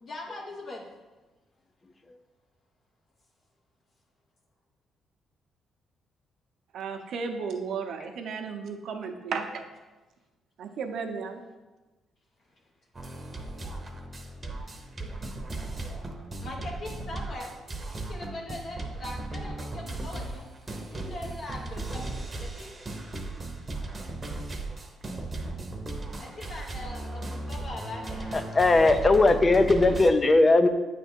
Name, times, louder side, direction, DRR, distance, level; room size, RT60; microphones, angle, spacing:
voice 1, 0.0-0.9 16.4-17.5 17.9-20.5 20.9-22.1 22.4-22.7 26.2-28.7, left 2 dB, 55° left, -1 dB, 1.1 m, -41 dB
voice 2, 6.7-9.6 10.6-11.4, right 5 dB, 70° right, 5 dB, 0.7 m, -34 dB
sound 1, 13.0-30.1, right 2 dB, 25° right, 0.8 m, -36 dB
voice 3, 28.5-30.7, left 2 dB, 30° left, 9 dB, 0.5 m, -19 dB
8.4 x 3.3 x 4.4 m, 1.2 s
cardioid pair, 90°, 0 cm